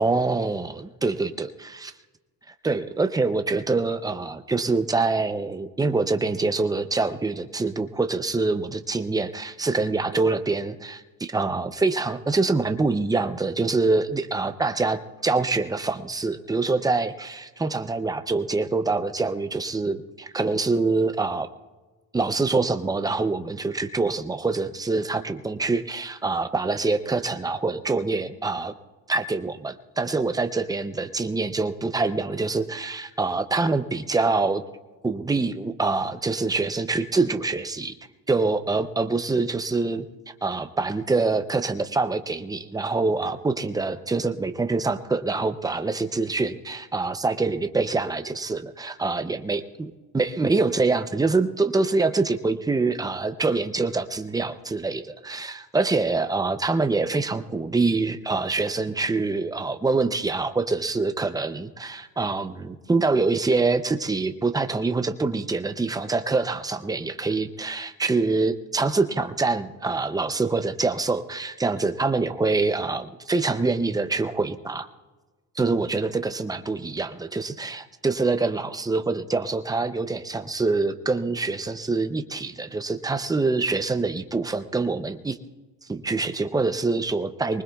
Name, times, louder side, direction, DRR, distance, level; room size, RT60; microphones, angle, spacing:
voice 1, 0.0-1.9 2.5-21.5 22.1-28.7 29.1-34.6 35.0-37.9 38.3-40.1 40.4-74.9 75.6-85.4 85.9-87.6, right 3 dB, 10° right, 9 dB, 0.4 m, -25 dB
24.0 x 20.0 x 2.3 m, 1.2 s
cardioid pair, 165°, 38 cm